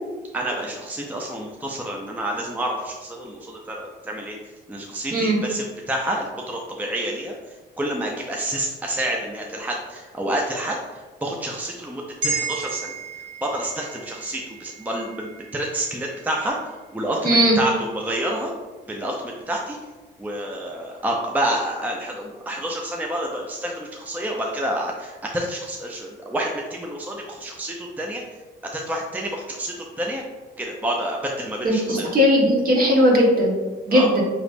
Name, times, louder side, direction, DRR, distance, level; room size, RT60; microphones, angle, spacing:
voice 1, 0.3-4.4 4.7-12.9 13.4-17.2 17.6-18.5 18.9-19.8 20.2-28.2 28.6-30.2 30.6-32.1 33.9-34.1, right 1 dB, 10° right, 0 dB, 0.5 m, -28 dB
sound 1, 12.2-16.7 17.1-17.2, right 4 dB, 65° right, 1.2 m, -33 dB
voice 2, 17.2-17.6 31.6-33.5 33.9-34.2, equal, 45° right, -1 dB, 1.2 m, -18 dB
4.9 x 3.2 x 2.5 m, 1.3 s
cardioid pair, 90°, 20 cm